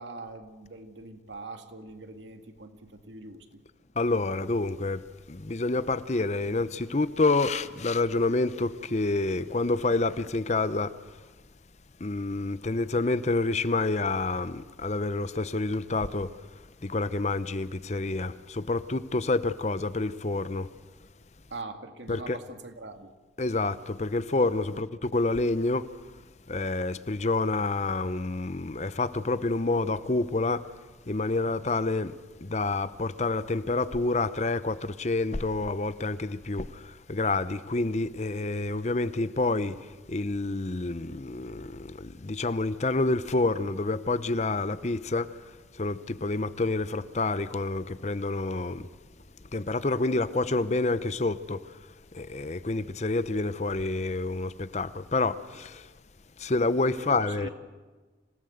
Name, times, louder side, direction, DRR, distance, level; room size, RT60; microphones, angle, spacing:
voice 1, 0.0-3.6 21.5-23.1 24.7-24.9 57.0-57.5, right 3 dB, 90° right, 2.2 m, -42 dB
voice 2, 4.0-5.0 5.3-10.9 12.0-16.3 16.8-20.7 22.1-22.4 23.4-25.9 26.5-30.6 31.1-32.1 32.4-36.8 37.1-39.8 40.1-45.3 45.8-48.9 49.5-51.6 52.1-55.8 56.4-57.5, left 2 dB, 40° left, 0.7 m, -28 dB
26.5 x 17.5 x 8.0 m
head